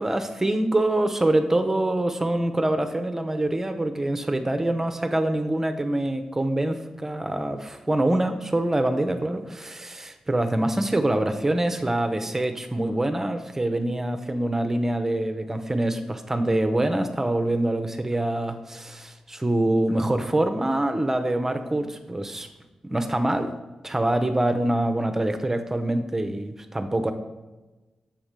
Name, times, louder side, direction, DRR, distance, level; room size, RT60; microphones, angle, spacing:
voice 1, 0.0-22.5 22.8-23.5 23.8-27.1, right 1 dB, 20° right, 7 dB, 0.6 m, -25 dB
7.3 x 3.0 x 5.0 m, 1.2 s
cardioid pair, 60°, 2 cm